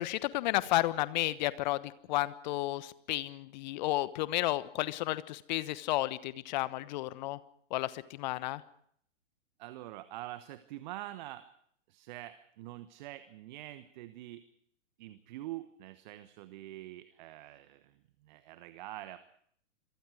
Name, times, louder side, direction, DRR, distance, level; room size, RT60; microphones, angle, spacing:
voice 1, 0.0-7.4 7.7-8.6, left 17 dB, 35° left, 16 dB, 1.2 m, -32 dB
voice 2, 9.6-11.5 11.9-14.5 15.0-19.2, right 15 dB, 35° right, 13 dB, 1.2 m, -45 dB
28.0 x 23.0 x 4.9 m, 0.64 s
figure-of-eight pair, 115°, 37 cm